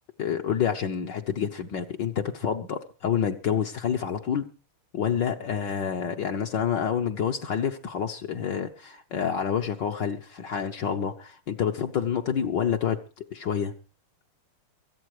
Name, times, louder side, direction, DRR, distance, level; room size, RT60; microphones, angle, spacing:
voice 1, 0.2-4.5 4.9-13.7, left 8 dB, 60° left, 3 dB, 1.6 m, -28 dB
23.0 x 8.5 x 4.9 m, 0.35 s
omnidirectional pair, 2.4 m